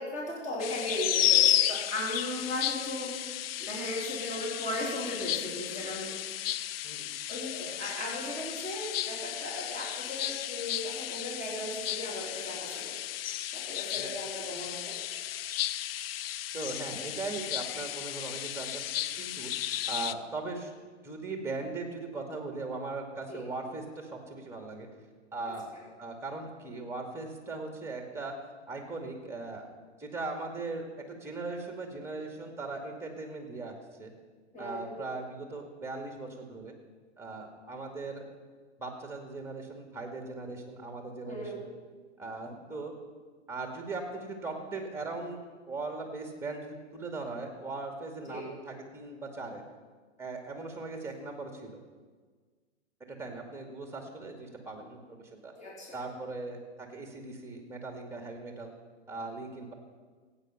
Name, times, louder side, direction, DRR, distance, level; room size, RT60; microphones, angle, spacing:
voice 1, 0.0-3.2 3.6-6.6 7.3-13.0 13.5-15.3 23.3-23.4 25.5-25.6 34.5-35.0 41.2-41.6 48.3-48.5 55.6-56.0, left 1 dB, 20° left, -4 dB, 3.4 m, -37 dB
sound 1, 0.6-20.1, left 12 dB, 55° left, 0.5 m, -33 dB
voice 2, 16.5-18.8 19.2-19.5 19.9-20.7 21.0-24.9 25.3-25.7 26.0-28.3 28.7-29.7 30.0-33.7 34.0-34.1 34.6-36.7 37.2-38.3 38.8-41.7 42.2-42.9 43.5-45.4 45.7-49.6 50.2-51.7 53.1-55.0 55.3-55.5 55.9-58.7 59.1-59.7, right 3 dB, 5° right, 4 dB, 2.2 m, -39 dB
15.5 x 8.8 x 5.7 m, 1.5 s
hypercardioid pair, 110°, 36 cm